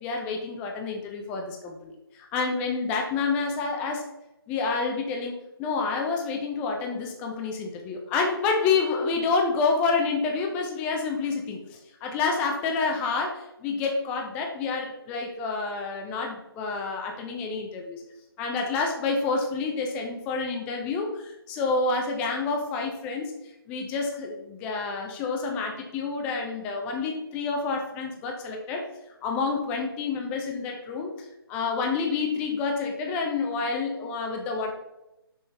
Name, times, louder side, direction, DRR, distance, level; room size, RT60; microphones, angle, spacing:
voice 1, 0.0-1.9 2.2-4.1 4.5-18.0 18.4-23.3 23.7-28.9 29.2-31.1 31.5-34.7, left 4 dB, 10° left, 2 dB, 0.4 m, -28 dB
5.7 x 5.2 x 3.2 m, 0.92 s
figure-of-eight pair, 150°, 13 cm